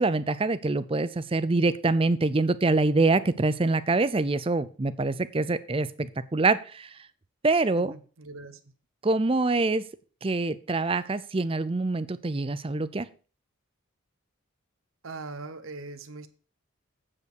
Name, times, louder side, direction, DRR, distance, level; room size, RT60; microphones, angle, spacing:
voice 1, 0.0-6.9 7.4-7.9 9.0-9.8 10.2-13.1, right 3 dB, 25° right, 0.5 m, -25 dB
voice 2, 7.7-8.7 15.0-16.3, right 3 dB, 80° right, 1.0 m, -41 dB
8.7 x 5.3 x 6.5 m
head